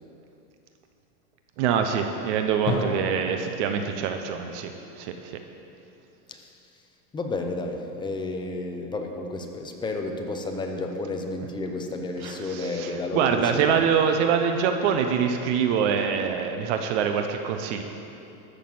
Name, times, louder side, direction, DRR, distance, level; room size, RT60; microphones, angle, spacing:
voice 1, 1.6-5.4 12.2-17.8, right 7 dB, 50° right, 6 dB, 1.0 m, -25 dB
Drum, 2.7-6.4, left 3 dB, 30° left, 1.4 m, -35 dB
voice 2, 7.1-13.8, left 2 dB, 10° left, 3 dB, 0.7 m, -31 dB
13.0 x 6.6 x 7.7 m, 2.8 s
supercardioid pair, 140°, 45 cm